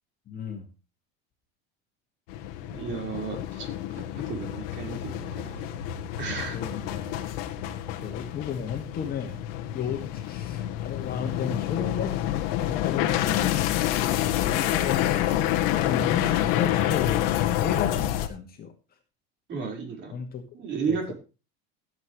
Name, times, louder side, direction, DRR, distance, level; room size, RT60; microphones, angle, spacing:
voice 1, 0.3-0.7 6.5-7.2 8.0-9.4 9.7-13.7 14.2-18.7 20.1-20.4 20.9-21.1, left 7 dB, 30° left, 4 dB, 2.1 m, -34 dB
Train destruction, 2.3-18.3, left 12 dB, 70° left, 1.6 m, -28 dB
voice 2, 2.7-5.6 6.2-6.6 19.5-20.1 20.5-21.1, right 5 dB, 35° right, 2 dB, 4.9 m, -33 dB
16.5 x 8.3 x 3.2 m, 0.30 s
supercardioid pair, 145°, 30 cm